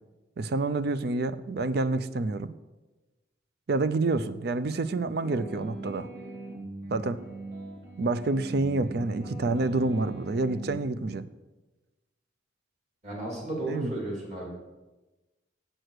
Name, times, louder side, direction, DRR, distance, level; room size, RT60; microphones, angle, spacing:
voice 1, 0.4-2.5 3.7-6.1 6.9-7.2 8.0-11.2 13.7-13.9, right 3 dB, 55° right, 14 dB, 0.4 m, -28 dB
sound 1, 5.2-10.7, right 2 dB, 70° right, 2.6 m, -41 dB
voice 2, 13.0-14.5, right 1 dB, 35° right, -2 dB, 2.7 m, -34 dB
7.7 x 6.3 x 6.5 m, 1.1 s
head